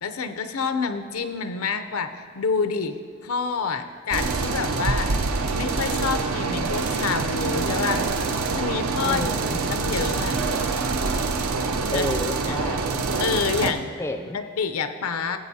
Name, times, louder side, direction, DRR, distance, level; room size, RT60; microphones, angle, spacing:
voice 1, 0.0-3.0 3.2-5.1 5.5-8.1 8.5-10.4 11.9-12.1 12.5-12.6 13.2-13.9 14.3-15.4, left 5 dB, 90° left, 9 dB, 0.6 m, -28 dB
sound 1, 4.1-13.7, right 4 dB, 75° right, 0.6 m, -25 dB
voice 2, 9.0-9.7 11.9-13.0 14.0-14.4, left 1 dB, 10° left, 6 dB, 0.4 m, -31 dB
15.5 x 7.7 x 2.7 m, 2.2 s
head